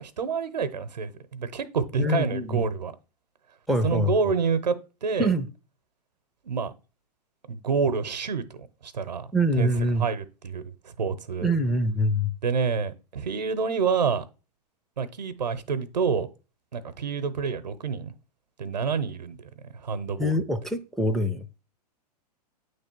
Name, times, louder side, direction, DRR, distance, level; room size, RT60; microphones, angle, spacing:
voice 1, 0.0-2.9 3.8-4.7 5.0-5.3 6.4-6.7 7.5-8.5 8.8-9.3 9.6-9.7 10.0-10.7 11.0-11.5 12.4-14.2 15.0-16.3 16.7-18.1 18.6-19.5 19.8-20.4, right 5 dB, 85° right, 0.8 m, -27 dB
voice 2, 2.0-2.6 3.7-4.3 5.2-5.5 9.3-10.1 11.4-12.3 20.2-21.4, equal, ahead, 0.4 m, -25 dB
8.9 x 3.3 x 4.4 m
hypercardioid pair, 110°, 21 cm